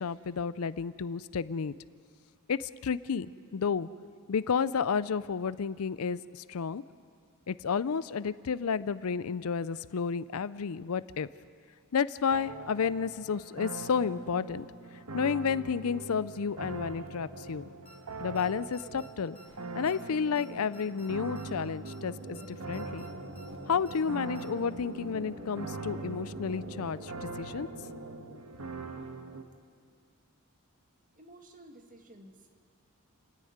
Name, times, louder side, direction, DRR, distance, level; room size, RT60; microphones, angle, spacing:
voice 1, 0.0-1.7 2.5-3.9 4.3-6.8 7.5-11.3 11.9-14.6 15.1-17.7 18.2-19.4 19.8-23.0 23.7-27.7, left 6 dB, 75° left, 17 dB, 0.5 m, -31 dB
sound 1, 12.3-29.4, right 3 dB, 75° right, 1.3 m, -42 dB
sound 2, 17.4-17.6 17.9-18.0 18.4-18.5 18.7-19.1 19.4-19.6 19.9-20.0 20.4-20.5 20.7-21.1 21.4-21.6 21.9-22.0 22.4-22.5 22.7-23.1 23.4-23.6 23.9-24.0 24.4-24.5, equal, 30° left, 2.6 m, -55 dB
sound 3, 21.8-29.4, right 1 dB, 55° right, 2.8 m, -48 dB
voice 2, 31.1-32.5, right 1 dB, 40° right, 4 dB, 1.8 m, -53 dB
29.5 x 10.0 x 9.4 m, 2.1 s
head